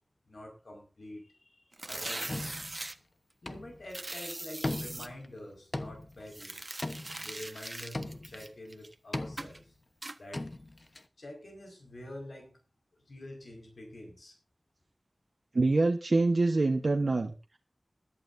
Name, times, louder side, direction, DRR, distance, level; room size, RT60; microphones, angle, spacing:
voice 1, 0.3-2.6 3.4-6.8 7.2-9.7 10.2-10.5 11.2-12.6 13.1-14.3, left 1 dB, 80° left, 2 dB, 5.1 m, -47 dB
sound 1, 1.7-2.9 3.9-5.1 6.3-8.9 9.4-9.6 10.0-10.2, right 2 dB, 40° right, 1.3 m, -40 dB
sound 2, 2.3-2.9 3.5-3.9 4.2-4.3 4.6-5.3 5.7-6.3 6.8-7.6 7.9-8.5 9.1-9.7 10.0-10.1 10.3-11.0, left 2 dB, 50° left, 1.0 m, -38 dB
voice 2, 15.5-17.6, right 3 dB, 70° right, 3 dB, 1.2 m, -26 dB
21.5 x 11.5 x 2.7 m, 0.32 s
wide cardioid pair, 45°, 0 cm